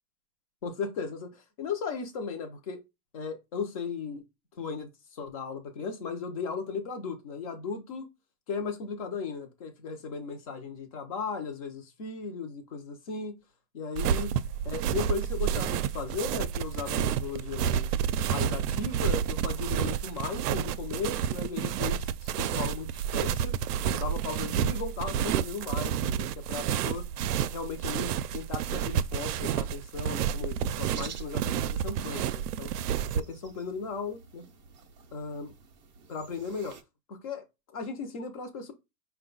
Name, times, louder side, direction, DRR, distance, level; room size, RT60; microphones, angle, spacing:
voice 1, 0.6-2.8 3.1-4.2 4.6-8.0 8.5-13.3 13.7-14.3 14.6-17.9 18.2-23.5 23.9-27.0 27.5-32.7 33.1-34.4 35.1-35.5 36.1-36.8 37.1-37.4 37.7-38.7, left 5 dB, 25° left, 0.5 m, -36 dB
sound 1, 14.0-33.2, right 9 dB, 80° right, 0.5 m, -30 dB
sound 2, 30.9-36.8, right 6 dB, 30° right, 0.5 m, -50 dB
4.8 x 2.3 x 3.7 m
supercardioid pair, 165°, 46 cm